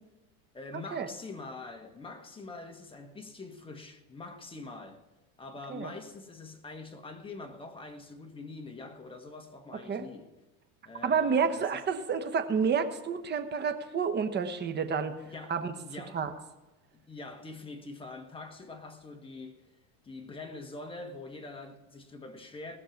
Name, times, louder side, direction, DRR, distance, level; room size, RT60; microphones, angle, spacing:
voice 1, 0.5-5.0 5.4-10.3 10.8-11.7 15.2-16.2 16.9-19.8 20.0-22.8, left 3 dB, 10° left, 1.4 m, -44 dB
voice 2, 11.0-15.1 15.5-15.7 16.1-16.3, right 6 dB, 25° right, 1.2 m, -29 dB
19.5 x 6.6 x 5.9 m
supercardioid pair, 130°, 43 cm